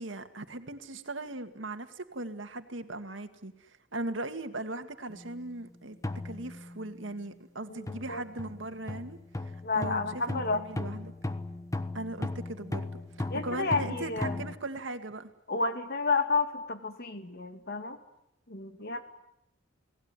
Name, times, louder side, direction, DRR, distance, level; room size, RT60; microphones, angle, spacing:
voice 1, 0.0-6.0 6.2-9.2 9.4-11.1 11.9-12.9 13.2-15.3, right 2 dB, 75° right, 7 dB, 2.1 m, -39 dB
sound 1, 5.1-5.4 6.0-7.0 7.9-14.5, left 2 dB, 15° left, 1.2 m, -37 dB
voice 2, 7.7-8.2 9.6-11.0 13.3-14.4 15.5-18.0 18.5-19.0, left 3 dB, 55° left, 8 dB, 2.4 m, -31 dB
29.5 x 18.5 x 9.8 m, 0.85 s
head